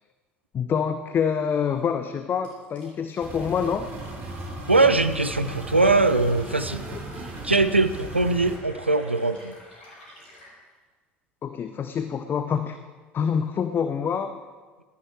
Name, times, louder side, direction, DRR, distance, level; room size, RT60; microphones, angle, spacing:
voice 1, 0.5-3.9 6.9-7.0 11.4-12.8 13.1-14.4, left 7 dB, 35° left, 10 dB, 0.7 m, -26 dB
Fill (with liquid), 2.4-10.6, left 1 dB, 75° left, 5.5 m, -48 dB
sound 1, 3.2-8.6, right 2 dB, 35° right, 3.9 m, -37 dB
voice 2, 4.7-6.9 7.4-9.5, right 3 dB, 90° right, 11 dB, 0.5 m, -21 dB
19.5 x 14.0 x 3.2 m, 1.4 s
figure-of-eight pair, 65°, 6 cm